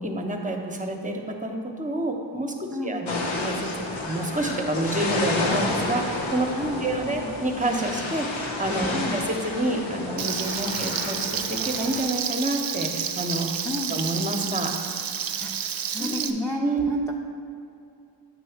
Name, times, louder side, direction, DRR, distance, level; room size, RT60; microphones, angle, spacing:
voice 1, 0.0-3.7 4.0-6.5 6.8-13.5 13.9-14.7 16.0-16.3 16.6-16.8, right 1 dB, 15° right, 2 dB, 0.9 m, -28 dB
voice 2, 2.7-3.0 6.6-7.3 8.9-9.2 13.6-14.0 15.4-17.1, left 2 dB, 5° left, -3 dB, 0.5 m, -32 dB
sound 1, 3.1-12.0, left 2 dB, 80° left, 0.9 m, -30 dB
Frying (food), 10.2-16.3, right 8 dB, 50° right, 0.5 m, -30 dB
8.6 x 3.1 x 5.7 m, 2.6 s
cardioid pair, 60°, 47 cm